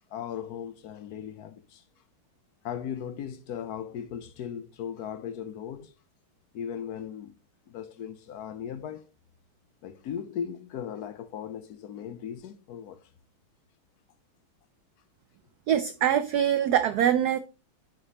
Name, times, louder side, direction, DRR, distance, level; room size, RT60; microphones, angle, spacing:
voice 1, 0.1-1.8 2.6-5.9 6.5-7.3 7.7-9.1 9.8-13.0, left 8 dB, 65° left, 0.9 m, -37 dB
voice 2, 15.7-17.4, right 9 dB, 85° right, 0.8 m, -23 dB
10.0 x 5.0 x 2.8 m
omnidirectional pair, 2.2 m